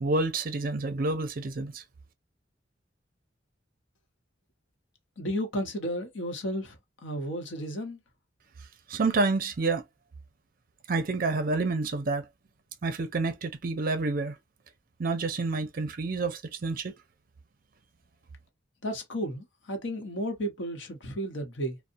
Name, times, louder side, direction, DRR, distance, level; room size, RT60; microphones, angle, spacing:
voice 1, 0.0-1.8 8.9-9.8 10.9-12.2 12.8-14.3 15.0-16.9, right 3 dB, 50° right, 0.5 m, -28 dB
voice 2, 5.2-6.8 7.0-8.0 18.8-21.8, equal, 75° left, 0.8 m, -33 dB
2.6 x 2.1 x 2.5 m
head